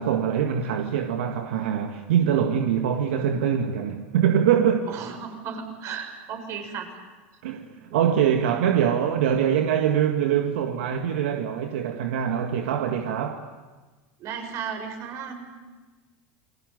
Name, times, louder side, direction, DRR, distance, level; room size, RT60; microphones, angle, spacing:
voice 1, 0.0-4.8 7.4-13.4, right 9 dB, 80° right, 1.9 m, -23 dB
voice 2, 4.9-6.9 14.2-15.5, right 7 dB, 50° right, 6.9 m, -34 dB
28.5 x 22.0 x 9.5 m
hypercardioid pair, 95°, 6 cm